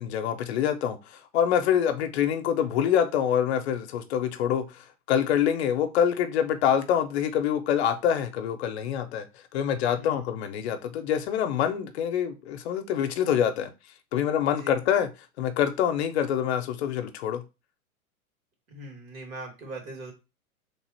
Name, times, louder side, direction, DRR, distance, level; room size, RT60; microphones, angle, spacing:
voice 1, 0.0-9.2 9.5-13.7 14.1-15.1 15.4-17.4, left 9 dB, 50° left, 0.6 m, -26 dB
voice 2, 18.7-20.1, right 2 dB, 70° right, 2.1 m, -40 dB
3.3 x 2.4 x 4.2 m
hypercardioid pair, 140°, 43 cm